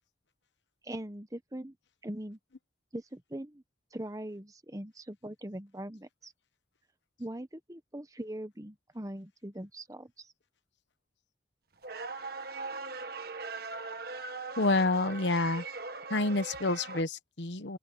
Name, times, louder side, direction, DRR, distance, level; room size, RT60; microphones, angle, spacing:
voice 1, 0.8-1.8 2.0-2.4 2.9-3.6 3.9-6.3 7.2-10.3, right 1 dB, 20° right, 1.0 m, -41 dB
sound 1, 11.8-17.0, right 3 dB, 55° right, 1.6 m, -40 dB
voice 2, 14.6-15.6 16.1-17.8, left 2 dB, 70° left, 1.1 m, -28 dB
open air
head